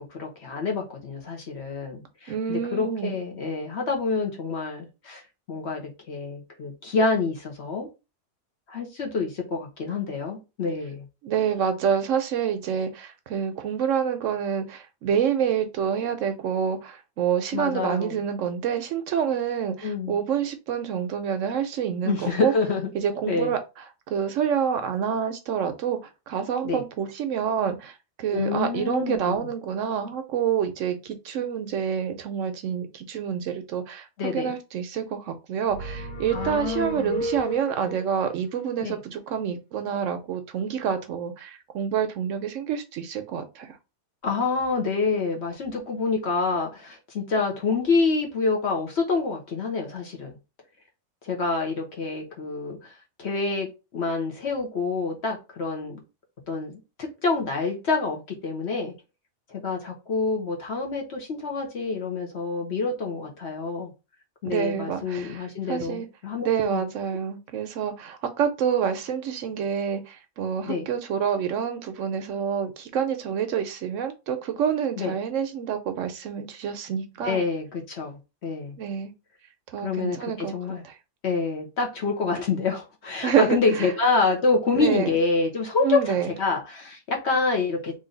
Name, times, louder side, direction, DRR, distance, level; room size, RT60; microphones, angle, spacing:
voice 1, 0.1-5.2 5.5-7.9 8.7-11.0 17.5-18.2 19.8-20.2 22.0-22.9 23.3-23.5 26.6-26.8 28.3-29.4 34.2-34.5 36.3-37.2 38.8-39.0 44.2-50.4 51.2-52.9 53.2-53.7 53.9-56.0 56.5-58.9 59.5-63.9 64.4-66.8 70.6-70.9 75.0-75.1 77.2-78.2 78.4-78.7 79.8-80.8 81.2-87.9, left 4 dB, 55° left, 1.1 m, -27 dB
voice 2, 2.3-3.2 11.2-22.5 22.9-43.8 64.4-66.1 66.4-77.4 78.8-79.1 79.7-80.5 80.8-81.0 83.2-83.9 84.7-85.2 85.8-86.3, right 8 dB, 70° right, 0.9 m, -27 dB
sound 1, 35.7-38.1, equal, 80° left, 1.4 m, -33 dB
3.1 x 2.6 x 3.8 m
omnidirectional pair, 1.5 m